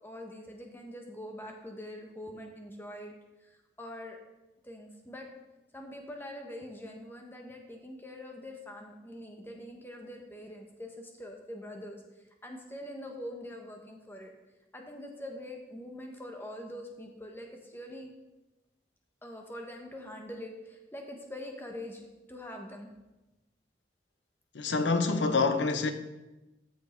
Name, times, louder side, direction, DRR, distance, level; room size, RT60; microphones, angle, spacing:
voice 1, 0.0-3.1 3.4-4.2 4.6-5.3 5.7-12.0 12.4-14.3 14.7-18.1 19.2-22.9, left 1 dB, 10° left, 1.2 m, -44 dB
voice 2, 24.5-25.9, left 4 dB, 85° left, 0.9 m, -26 dB
13.5 x 6.4 x 4.4 m
head